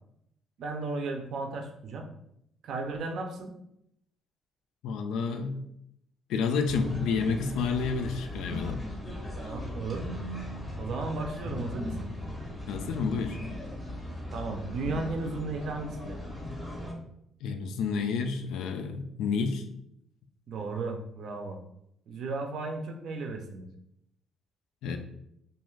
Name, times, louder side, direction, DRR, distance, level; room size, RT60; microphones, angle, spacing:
voice 1, 0.6-2.1 2.6-3.5 8.5-8.8 9.4-10.1 10.8-12.1 14.3-16.2 20.5-21.6 22.1-23.7, right 3 dB, 55° right, 4 dB, 0.4 m, -35 dB
voice 2, 4.8-5.7 6.3-8.8 12.7-13.4 17.4-19.6 24.8-25.0, left 5 dB, 80° left, 6 dB, 0.3 m, -30 dB
sound 1, 6.7-16.9, left 1 dB, 15° left, 0.6 m, -38 dB
2.5 x 2.3 x 3.1 m, 0.77 s
cardioid pair, 160°, 0 cm